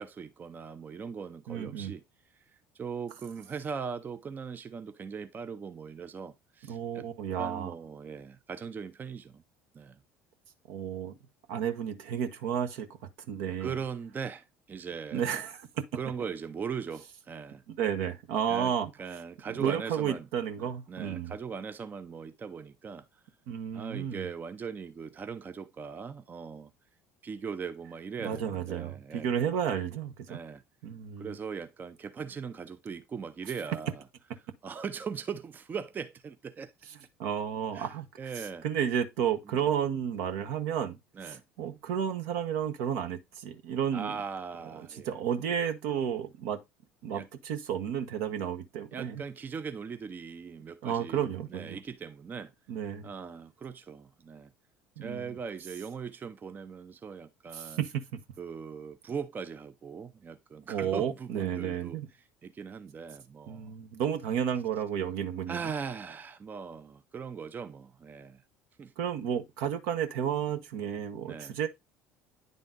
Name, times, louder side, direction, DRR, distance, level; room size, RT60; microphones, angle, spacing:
voice 1, 0.0-2.0 2.7-7.1 7.4-9.4 9.7-10.0 13.6-15.4 15.9-17.6 18.5-18.7 19.0-20.3 20.6-23.2 23.7-26.7 27.2-29.3 30.3-30.6 31.2-34.0 34.6-36.7 37.7-37.9 38.2-38.6 39.5-39.6 41.1-41.4 43.9-45.1 47.1-47.3 48.9-52.5 53.0-54.5 55.0-57.8 58.4-62.0 62.4-63.7 65.5-68.4 68.8-68.9 71.2-71.6, right 6 dB, 30° right, 0.6 m, -40 dB
voice 2, 1.5-1.9 6.7-7.7 10.7-11.1 11.5-13.0 13.3-13.7 15.1-15.8 17.8-18.9 19.5-21.3 23.5-24.3 28.2-30.4 30.8-31.4 37.2-41.0 41.2-44.1 44.8-46.6 47.0-49.2 50.8-51.8 52.7-53.1 55.0-55.4 57.5-58.2 60.7-62.1 63.5-65.7 69.0-71.7, right 8 dB, 70° right, 1.0 m, -32 dB
9.6 x 3.8 x 3.7 m
hypercardioid pair, 65°, 6 cm